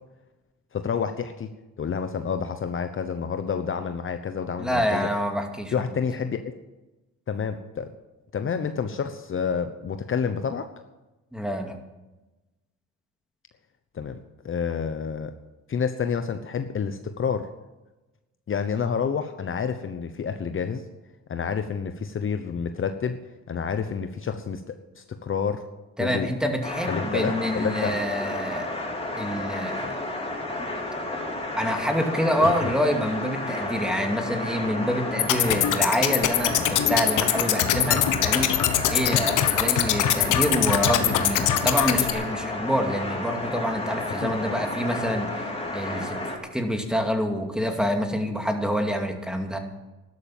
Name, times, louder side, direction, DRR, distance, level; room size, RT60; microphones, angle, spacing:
voice 1, 0.7-1.5 1.8-5.1 5.7-6.4 7.3-7.9 8.3-10.7 13.9-14.2 14.4-15.3 15.7-17.5 18.5-20.8 21.3-23.2 23.5-24.6 25.0-25.6 26.0-26.3 26.9-28.0 32.4-32.7 37.9-38.0 44.2-44.3, left 6 dB, 45° left, 8 dB, 1.0 m, -29 dB
voice 2, 4.6-5.7 11.3-11.8 26.0-28.7 29.2-30.0 31.6-38.6 38.9-45.5 45.7-46.2 46.5-49.6, equal, ahead, 4 dB, 2.4 m, -27 dB
sound 1, 26.6-46.4, left 2 dB, 20° left, 3.4 m, -32 dB
sound 2, 35.2-42.1, left 11 dB, 85° left, 1.3 m, -23 dB
12.5 x 12.0 x 7.3 m, 1.1 s
cardioid pair, 90°, 30 cm